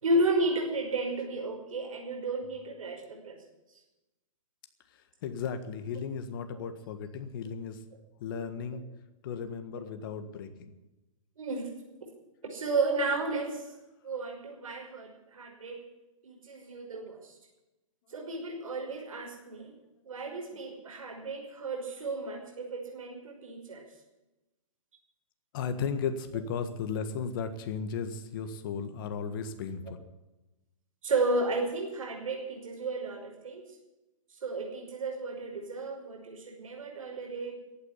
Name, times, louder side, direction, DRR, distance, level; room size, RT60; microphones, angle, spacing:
voice 1, 0.0-3.4 6.6-6.7 11.4-11.7 12.5-13.7 14.0-15.8 16.2-17.4 18.1-19.7 20.0-23.8 31.0-33.6 34.3-37.6, right 2 dB, 80° right, 0 dB, 5.5 m, -33 dB
voice 2, 4.9-7.8 8.2-8.8 9.2-10.7 25.5-30.0, left 6 dB, 40° left, 9 dB, 1.6 m, -35 dB
15.0 x 8.9 x 9.9 m, 1.0 s
hypercardioid pair, 150°, 17 cm